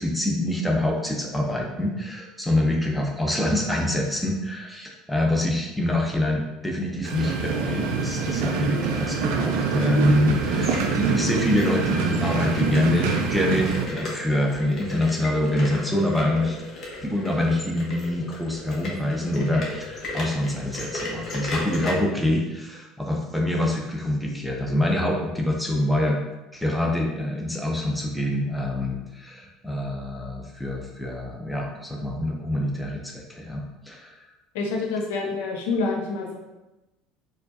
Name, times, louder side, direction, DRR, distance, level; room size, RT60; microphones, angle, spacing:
voice 1, 0.0-16.6 17.0-26.2 26.5-34.1, left 1 dB, 5° left, -1 dB, 0.6 m, -25 dB
sound 1, 7.0-13.9, right 5 dB, 70° right, 0.5 m, -25 dB
sound 2, 10.4-21.9, left 2 dB, 45° left, 1.1 m, -35 dB
voice 2, 34.5-36.4, left 3 dB, 75° left, 1 dB, 0.5 m, -27 dB
4.3 x 2.4 x 2.7 m, 1.0 s
hypercardioid pair, 75°, 0 cm